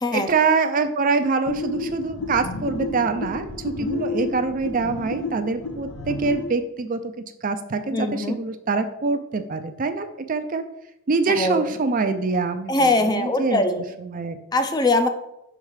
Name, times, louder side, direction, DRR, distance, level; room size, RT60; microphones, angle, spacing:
voice 1, 0.1-10.6 11.1-13.6 14.0-14.4, right 4 dB, 40° right, 8 dB, 0.4 m, -25 dB
sound 1, 1.5-6.5, left 3 dB, 90° left, 1.0 m, -31 dB
voice 2, 7.9-8.4 11.3-11.7 12.7-13.8 14.5-15.1, left 2 dB, 20° left, 7 dB, 0.5 m, -22 dB
5.7 x 4.6 x 5.6 m, 0.85 s
head